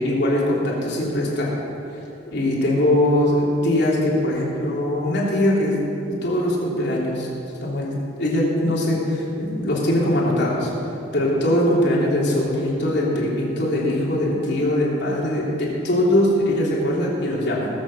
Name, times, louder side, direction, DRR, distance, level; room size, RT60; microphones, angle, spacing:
voice 1, 0.0-1.5 2.3-7.3 7.6-10.7 11.1-17.7, left 1 dB, 60° left, -5 dB, 3.3 m, -21 dB
19.0 x 7.6 x 6.3 m, 2.8 s
head